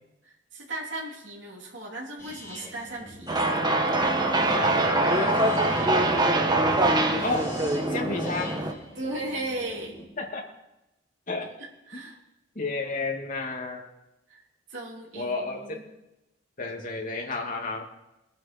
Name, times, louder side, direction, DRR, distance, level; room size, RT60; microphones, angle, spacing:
voice 1, 0.2-3.4 8.9-10.0 11.6-12.2 14.3-14.4 14.7-15.8, right 2 dB, 75° right, -4 dB, 3.4 m, -36 dB
sound 1, 2.2-10.0, equal, 15° left, 5.6 m, -42 dB
sound 2, 3.3-8.7, right 2 dB, 25° right, 1.3 m, -23 dB
voice 2, 4.4-5.3 7.2-7.5 7.9-8.5 10.2-10.4 11.3-11.5 11.9-12.0 12.6-13.9 15.1-15.8 16.6-17.8, left 3 dB, 45° left, 1 dB, 2.5 m, -31 dB
22.0 x 9.6 x 4.5 m, 0.94 s
head